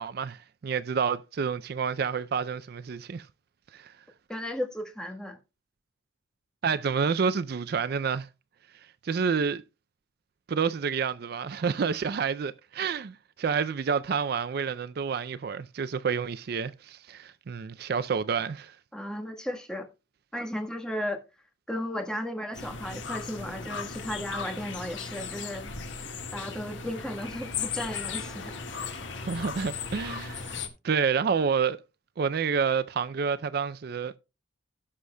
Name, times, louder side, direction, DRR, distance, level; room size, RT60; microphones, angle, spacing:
voice 1, 0.0-3.3 3.7-3.9 6.6-8.3 9.0-9.6 10.5-18.8 29.3-30.6 30.8-31.8 32.2-34.2, right 6 dB, 55° right, 0.4 m, -29 dB
voice 2, 4.3-5.4 18.9-19.9 20.3-21.2 21.7-25.7 26.3-28.5, left 1 dB, 5° left, 1.3 m, -35 dB
sound 1, 22.5-30.7, left 5 dB, 85° left, 1.6 m, -37 dB
17.0 x 6.3 x 2.2 m
head